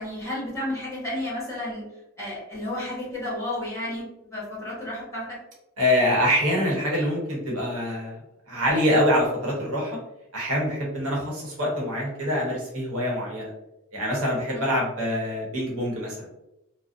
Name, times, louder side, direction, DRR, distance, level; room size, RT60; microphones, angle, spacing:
voice 1, 0.0-1.8 2.2-5.4 14.5-14.6, left 1 dB, 15° left, -8 dB, 1.0 m, -32 dB
voice 2, 5.8-8.2 8.5-10.0 10.3-13.5 13.9-16.3, equal, 85° right, -3 dB, 0.9 m, -25 dB
2.4 x 2.0 x 2.5 m, 0.89 s
head